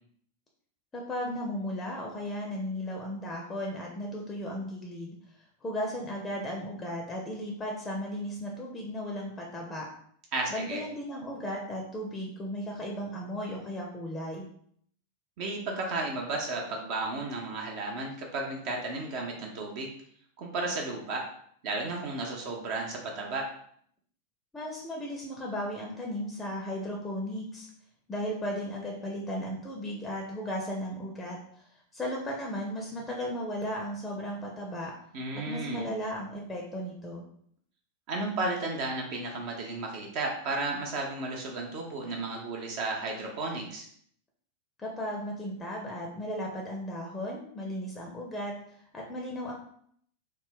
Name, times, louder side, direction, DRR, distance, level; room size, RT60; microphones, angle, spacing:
voice 1, 0.9-5.1 5.6-9.9 10.5-14.5 24.5-27.7 28.1-31.7 31.9-34.9 35.3-37.2 44.8-48.6 48.9-49.5, equal, 15° left, -1 dB, 0.5 m, -35 dB
voice 2, 10.3-10.8 15.4-19.9 20.4-21.2 21.6-23.5 35.1-35.9 38.1-43.9, right 2 dB, 45° right, 0 dB, 0.6 m, -33 dB
3.2 x 2.1 x 3.6 m, 0.64 s
figure-of-eight pair, 90°, 0 cm